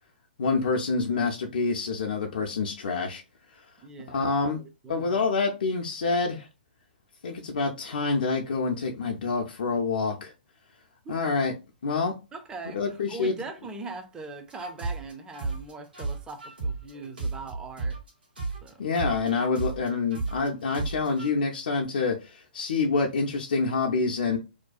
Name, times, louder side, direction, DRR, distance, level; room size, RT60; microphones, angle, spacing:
voice 1, 0.4-3.2 3.5-3.6 4.1-4.6 4.9-6.5 7.2-10.3 11.1-11.5 11.8-12.1 12.7-13.3 18.8-24.4, left 4 dB, 65° left, 0.4 m, -27 dB
voice 2, 3.8-5.2 11.0-11.2 12.3-18.0 18.6-18.8, right 4 dB, 15° right, 0.4 m, -41 dB
sound 1, 14.5-18.1 18.4-21.3, right 3 dB, 75° right, 1.1 m, -33 dB
2.5 x 2.2 x 2.3 m
figure-of-eight pair, 120°, 5 cm